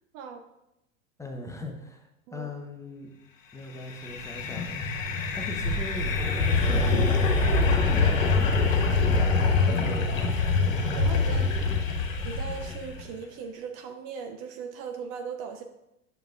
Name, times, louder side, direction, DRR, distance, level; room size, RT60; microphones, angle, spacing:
voice 1, 1.2-3.1 3.5-4.9 5.3-10.5, left 2 dB, 10° left, 2 dB, 0.8 m, -40 dB
sound 1, 3.8-13.0, left 3 dB, 70° left, 1.3 m, -24 dB
voice 2, 11.0-11.6 11.9-12.0 12.2-15.6, right 6 dB, 35° right, 6 dB, 0.6 m, -38 dB
9.1 x 6.7 x 2.4 m, 0.88 s
figure-of-eight pair, 90°, 40 cm